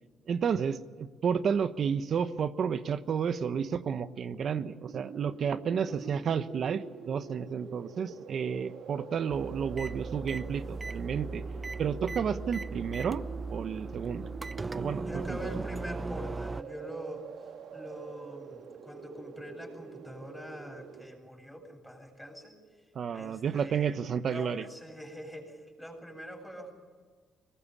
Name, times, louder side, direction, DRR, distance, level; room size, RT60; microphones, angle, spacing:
voice 1, 0.3-11.4 11.8-13.2 13.5-14.3 14.7-15.7 22.9-24.7, right 7 dB, 55° right, 12 dB, 1.2 m, -31 dB
sound 1, 4.9-21.1, right 6 dB, 75° right, 1.9 m, -46 dB
voice 2, 5.9-6.2 15.0-17.3 17.7-22.6 23.1-24.0 24.3-26.7, equal, 5° left, 2 dB, 7.9 m, -44 dB
sound 2, 9.3-16.6, right 3 dB, 25° right, 0.6 m, -38 dB
23.0 x 20.0 x 8.5 m, 1.5 s
cardioid pair, 90°, 0 cm